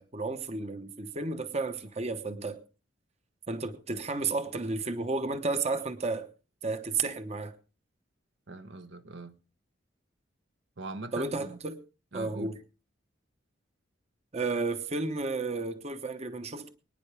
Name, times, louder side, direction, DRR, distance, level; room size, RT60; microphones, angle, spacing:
voice 1, 0.0-2.6 3.5-6.3 6.6-7.5 11.1-11.8 12.1-12.6 14.3-16.7, right 3 dB, 35° right, 0.9 m, -32 dB
voice 2, 8.5-9.4 10.8-11.6 12.1-12.5, right 2 dB, 70° right, 1.0 m, -41 dB
24.0 x 9.8 x 3.4 m
head